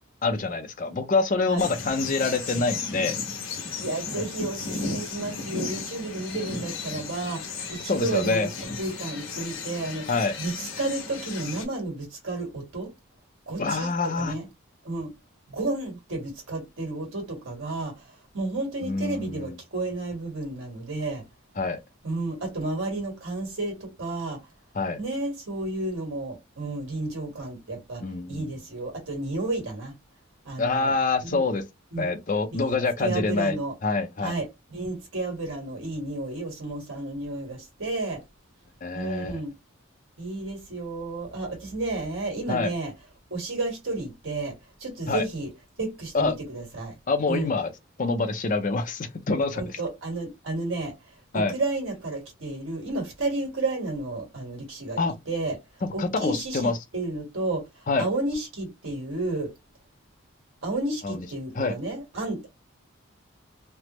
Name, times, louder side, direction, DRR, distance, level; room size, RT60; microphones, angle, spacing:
voice 1, 0.2-3.2 4.2-4.3 7.9-8.5 10.1-10.3 13.6-14.3 18.8-19.6 21.6-21.8 24.7-25.0 28.0-28.5 30.6-31.6 32.0-33.6 33.8-34.3 38.8-39.4 42.5-42.7 45.1-45.2 46.1-46.3 47.1-47.7 48.0-49.6 51.3-51.5 55.0-55.1 55.8-56.8 57.9-58.1 61.0-61.3 61.5-61.7, left 3 dB, 40° left, 0.5 m, -26 dB
sound 1, 1.6-11.7, left 4 dB, 75° left, 1.1 m, -35 dB
voice 2, 3.8-8.5 8.8-10.1 10.4-12.9 13.5-14.5 14.8-15.1 15.5-21.2 22.0-24.4 25.0-29.9 30.4-30.9 31.2-31.4 31.9-32.1 32.5-33.7 34.2-38.2 38.9-39.5 40.2-42.9 43.3-44.5 44.8-45.5 45.8-46.9 47.3-47.5 49.5-50.9 51.3-55.0 55.3-55.6 55.9-57.7 58.0-59.5 60.6-62.5, right 2 dB, 70° right, 1.5 m, -32 dB
3.3 x 2.0 x 2.9 m
head